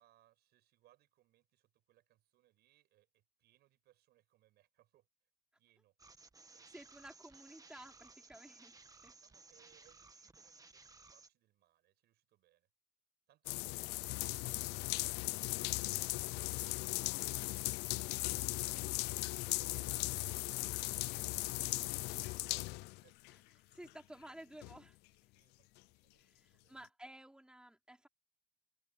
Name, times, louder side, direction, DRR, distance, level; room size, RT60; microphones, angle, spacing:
voice 1, 0.0-5.1 5.5-6.1 6.5-6.7 8.9-12.7 13.3-15.1 15.6-18.2 18.7-22.7 23.0-23.2 25.3-26.8, right 15 dB, 75° right, 7.2 m, -72 dB
sound 1, 6.0-11.3, right 3 dB, 20° right, 1.7 m, -59 dB
voice 2, 6.7-9.2 23.7-25.0 26.2-28.1, right 1 dB, 5° right, 4.2 m, -54 dB
sound 2, 13.4-23.3 23.9-24.0 24.6-24.8, left 22 dB, 85° left, 0.4 m, -38 dB
supercardioid pair, 85°, 17 cm